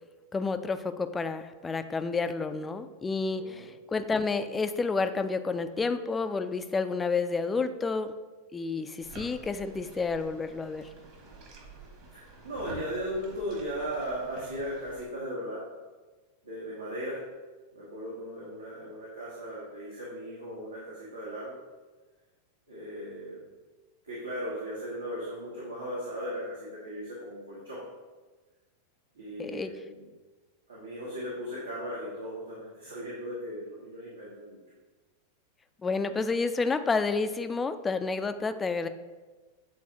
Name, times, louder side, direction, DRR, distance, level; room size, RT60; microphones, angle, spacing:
voice 1, 0.3-8.1 8.5-10.9 29.4-29.7 35.8-38.9, left 4 dB, 15° left, 10 dB, 0.4 m, -30 dB
voice 2, 3.3-3.7 12.1-15.6 16.4-17.2 17.7-21.6 22.7-23.4 24.0-27.8 29.1-30.0 30.7-34.6, equal, 75° right, -7 dB, 1.4 m, -37 dB
sound 1, 9.0-15.1, right 2 dB, 45° right, 1.5 m, -49 dB
8.3 x 4.0 x 2.8 m, 1.3 s
figure-of-eight pair, 90°, 0 cm